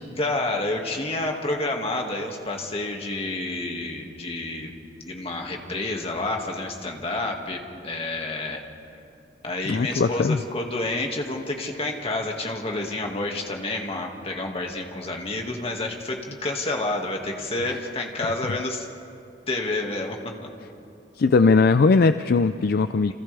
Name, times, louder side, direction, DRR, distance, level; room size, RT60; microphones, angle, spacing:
voice 1, 0.2-4.7 5.1-8.6 9.4-18.9 19.5-20.5 23.1-23.2, left 2 dB, 35° left, 1 dB, 2.1 m, -29 dB
voice 2, 9.7-10.4 17.7-17.8 21.2-23.1, left 4 dB, 55° left, 11 dB, 0.4 m, -19 dB
29.5 x 27.0 x 3.5 m, 2.6 s
head